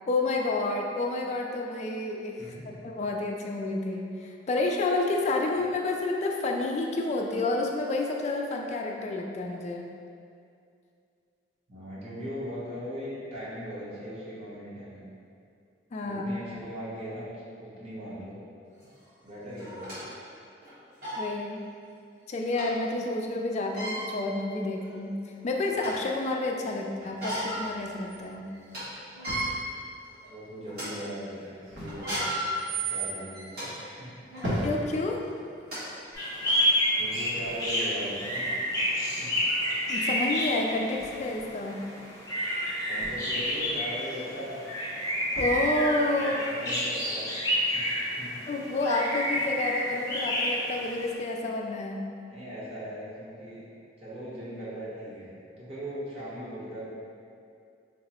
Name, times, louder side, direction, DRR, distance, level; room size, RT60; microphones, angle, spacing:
voice 1, 0.1-2.4 2.7-9.9 15.9-16.2 21.2-21.6 22.3-28.5 34.6-35.2 39.9-41.9 45.4-46.3 48.5-52.1, left 2 dB, 40° left, 1 dB, 0.3 m, -29 dB
voice 2, 2.4-2.8 11.7-15.1 16.0-17.3 17.6-18.4 19.2-19.9 30.3-34.1 37.0-38.5 38.8-39.3 42.9-44.6 46.1-47.3 47.7-47.8 48.2-48.4 52.3-53.6 54.0-56.9, equal, 35° right, -10 dB, 0.9 m, -39 dB
sound 1, 18.8-18.9 19.6-20.0 20.6-20.7 21.0-21.2 22.6-22.7 23.6-24.0 24.8-24.9 25.4-26.1 27.0-27.6 28.1-28.2 28.5-28.8 29.1-29.4 30.1-30.3 30.7-30.9 31.9-33.7 34.3-34.5 35.3-35.4 35.7-35.8 36.5-36.6, right 2 dB, 60° right, 1.5 m, -33 dB
sound 2, 27.6-47.2, equal, 75° right, 1.0 m, -43 dB
sound 3, 36.1-51.1, equal, 20° left, 0.7 m, -29 dB
3.6 x 2.0 x 4.1 m, 2.4 s
head